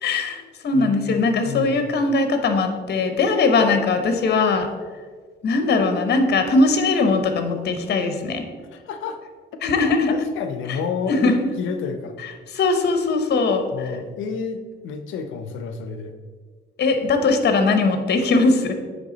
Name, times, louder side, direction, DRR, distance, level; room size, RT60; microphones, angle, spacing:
voice 1, 0.0-4.7 5.4-8.4 9.6-10.1 10.7-10.8 11.1-11.5 12.2-13.9 16.8-18.7, left 3 dB, 55° left, 6 dB, 0.9 m, -20 dB
voice 2, 0.7-1.8 8.7-9.2 9.8-12.2 13.7-16.1, left 5 dB, 85° left, 8 dB, 0.6 m, -30 dB
9.4 x 3.4 x 3.9 m, 1.5 s
cardioid pair, 90°, 20 cm